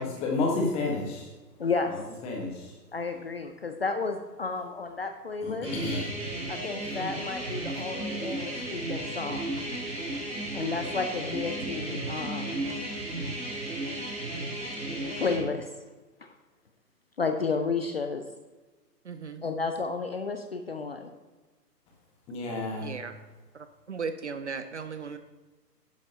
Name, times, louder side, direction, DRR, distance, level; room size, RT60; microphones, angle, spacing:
voice 1, 0.0-1.3 1.9-2.8 5.4-6.1 22.3-22.9, left 3 dB, 10° left, 0 dB, 1.3 m, -31 dB
voice 2, 1.6-1.9 2.9-5.7 6.5-9.6 10.2-12.8 13.7-13.8 14.5-14.6 14.9-15.7 16.2-16.3 17.2-18.2 19.4-21.1, left 4 dB, 40° left, 6 dB, 0.6 m, -32 dB
sound 1, 5.6-15.4, right 1 dB, 10° right, 2.7 m, -34 dB
voice 3, 19.0-19.4 22.8-23.1 23.5-25.2, right 5 dB, 45° right, 10 dB, 0.6 m, -36 dB
10.5 x 10.5 x 2.8 m, 1.2 s
figure-of-eight pair, 130°, 49 cm